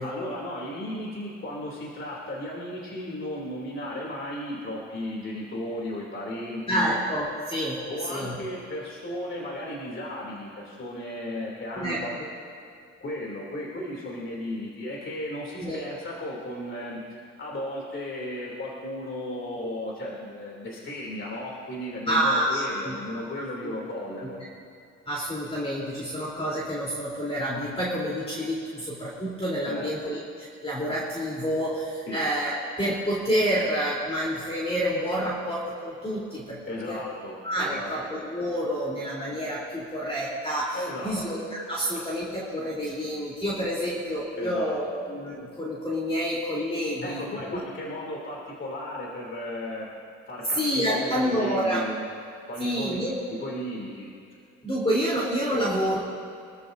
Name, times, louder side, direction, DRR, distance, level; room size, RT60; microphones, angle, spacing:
voice 1, 0.0-7.0 7.9-12.1 13.0-24.4 29.6-30.1 32.1-32.2 36.7-37.9 40.7-41.2 44.4-44.7 47.0-49.9 50.3-52.0 52.5-53.0 53.3-54.1, left 1 dB, 40° left, -3 dB, 3.0 m, -35 dB
voice 2, 6.7-7.8 8.1-8.3 11.8-12.3 15.6-15.8 22.1-23.0 23.6-23.7 25.1-36.6 36.9-37.0 37.4-47.2 50.5-51.8 52.6-53.2 54.6-56.0, equal, 20° left, -6 dB, 3.6 m, -28 dB
25.5 x 13.5 x 2.7 m, 2.5 s
cardioid pair, 90°, 30 cm